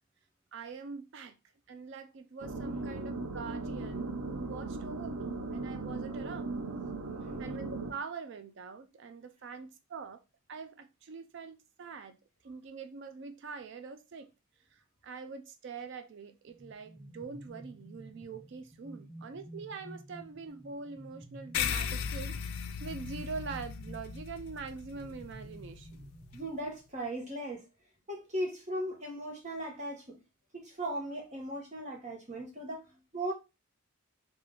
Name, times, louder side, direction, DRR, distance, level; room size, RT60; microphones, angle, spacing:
voice 1, 0.5-1.4 1.7-6.6 7.4-10.2 10.5-12.2 12.4-14.3 14.7-26.1, right 5 dB, 55° right, 0.4 m, -44 dB
sound 1, 2.4-7.9, right 3 dB, 90° right, 0.7 m, -38 dB
sound 2, 16.5-27.0, right 1 dB, 5° left, 0.5 m, -51 dB
sound 3, 21.5-26.4, left 7 dB, 80° left, 0.4 m, -37 dB
voice 2, 26.3-27.6 28.1-30.2 30.5-32.8 33.1-33.3, right 1 dB, 35° right, 0.9 m, -37 dB
3.7 x 2.4 x 3.2 m
head